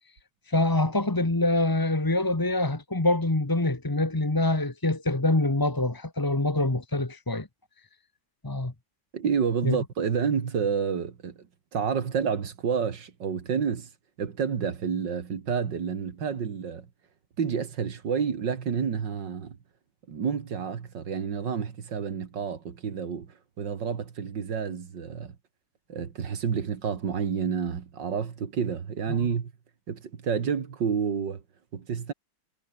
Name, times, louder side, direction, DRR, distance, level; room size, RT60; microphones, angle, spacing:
voice 1, 0.5-7.5 8.4-8.7 9.6-9.8 29.1-29.2, left 2 dB, 15° left, 1.0 m, -25 dB
voice 2, 9.1-11.4 11.7-13.9 14.2-16.9 17.4-19.6 20.1-23.3 23.6-25.4 25.9-29.5 29.9-31.4 31.7-32.1, right 6 dB, 55° right, 2.4 m, -29 dB
omnidirectional pair, 2.4 m